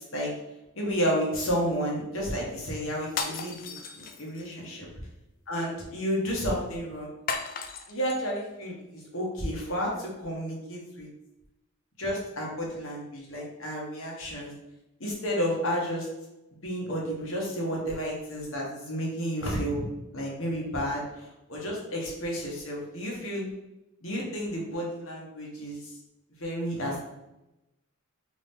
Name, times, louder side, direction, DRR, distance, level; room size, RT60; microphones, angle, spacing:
voice 1, 0.7-4.9 5.5-7.1 7.9-11.1 12.0-14.5 15.0-16.1 16.6-19.8 20.1-23.5 24.0-25.9 26.4-27.0, equal, 65° left, -3 dB, 1.2 m, -31 dB
sound 1, 3.1-4.5 7.3-8.2, left 5 dB, 40° left, 0.3 m, -35 dB
3.7 x 2.7 x 3.5 m, 0.94 s
head